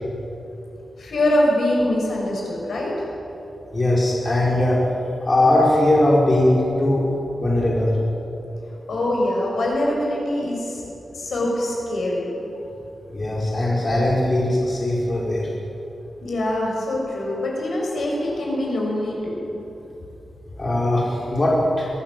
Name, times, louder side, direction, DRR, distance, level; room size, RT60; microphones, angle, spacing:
voice 1, 1.0-3.1 8.9-10.8 11.1-12.3 16.2-19.4, left 1 dB, 75° left, -2 dB, 6.5 m, -23 dB
voice 2, 3.7-4.8 5.2-7.0 7.4-8.0 13.1-15.5 20.6-21.9, left 1 dB, 30° left, -4 dB, 4.7 m, -19 dB
23.5 x 18.0 x 7.8 m, 2.9 s
wide cardioid pair, 130°, 0 cm